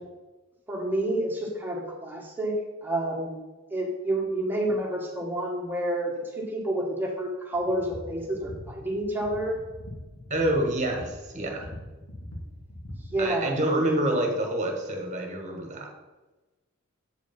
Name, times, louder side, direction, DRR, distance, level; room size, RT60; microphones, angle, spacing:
voice 1, 0.7-2.5 2.8-3.4 3.7-9.6 13.1-13.6, right 1 dB, 10° right, -2 dB, 1.5 m, -29 dB
sound 1, 7.5-13.2, left 1 dB, 90° left, 2.2 m, -43 dB
voice 2, 10.3-11.7 13.2-15.9, right 1 dB, 35° right, 2 dB, 1.4 m, -27 dB
8.1 x 5.1 x 5.3 m, 1.1 s
head